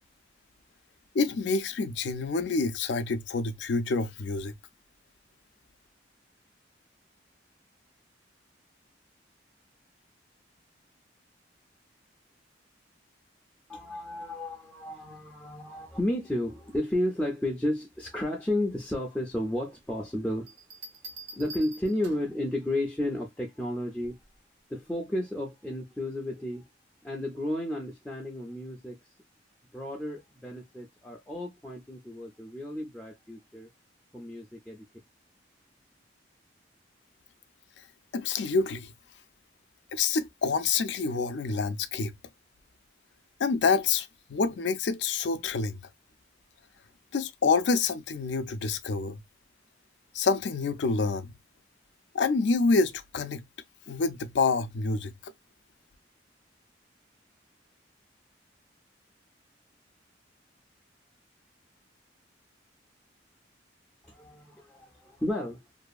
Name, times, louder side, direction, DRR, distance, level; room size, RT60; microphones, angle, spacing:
voice 1, 1.1-4.5 38.1-38.9 39.9-42.1 43.4-45.8 47.1-49.2 50.1-51.3 52.1-53.4 53.9-55.3, left 4 dB, 65° left, 0.4 m, -27 dB
voice 2, 13.7-20.5 21.3-24.2 24.7-26.6 27.0-29.0 29.7-33.7 34.1-34.8 64.0-65.6, left 1 dB, 5° left, 0.4 m, -32 dB
Bell, 20.5-22.4 24.0-24.4, right 3 dB, 70° right, 0.8 m, -45 dB
2.7 x 2.3 x 2.3 m
head